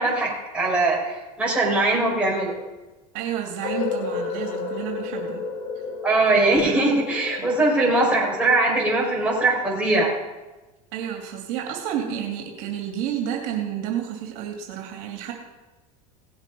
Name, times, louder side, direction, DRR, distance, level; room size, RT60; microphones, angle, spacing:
voice 1, 0.0-2.6 6.0-10.1, right 2 dB, 5° right, -4 dB, 4.6 m, -21 dB
voice 2, 3.1-5.5 7.4-7.5 10.9-15.3, right 9 dB, 65° right, 2 dB, 2.4 m, -30 dB
sound 1, 3.6-9.5, left 5 dB, 80° left, 1.9 m, -32 dB
18.0 x 7.4 x 5.4 m, 1.1 s
supercardioid pair, 125°, 20 cm